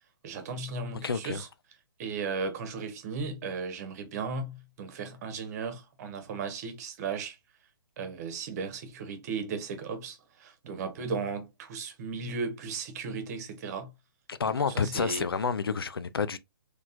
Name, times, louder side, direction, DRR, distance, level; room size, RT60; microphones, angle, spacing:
voice 1, 0.2-1.5 2.0-7.4 8.0-13.9 14.6-15.2, right 4 dB, 45° right, 1.3 m, -36 dB
voice 2, 1.0-1.4 14.3-16.4, left 5 dB, 85° left, 0.5 m, -29 dB
4.1 x 3.1 x 2.5 m
hypercardioid pair, 135°, 12 cm